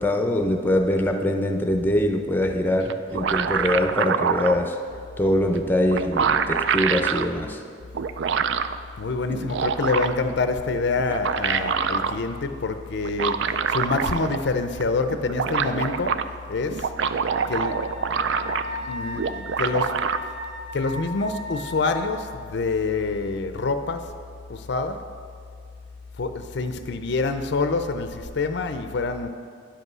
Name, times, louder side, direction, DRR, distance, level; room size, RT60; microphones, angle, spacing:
voice 1, 0.0-4.8 5.2-7.6, left 1 dB, 10° left, 4 dB, 0.6 m, -23 dB
sound 1, 2.9-4.6 5.6-5.7 5.9-7.3 7.9-8.8 9.3-10.3 11.0-12.2 13.0-14.5 14.8-14.9 15.1-16.2 16.7-18.8 19.2-20.2, right 6 dB, 65° right, 0.4 m, -25 dB
voice 2, 9.0-16.9 17.5-17.8 18.9-20.3 20.7-24.1 24.5-25.1 26.2-29.3, left 3 dB, 60° left, 8 dB, 0.5 m, -26 dB
Wind instrument woodwind instrument, 17.3-22.2, left 1 dB, 30° right, 1.7 m, -36 dB
10.0 x 5.4 x 6.1 m, 2.3 s
head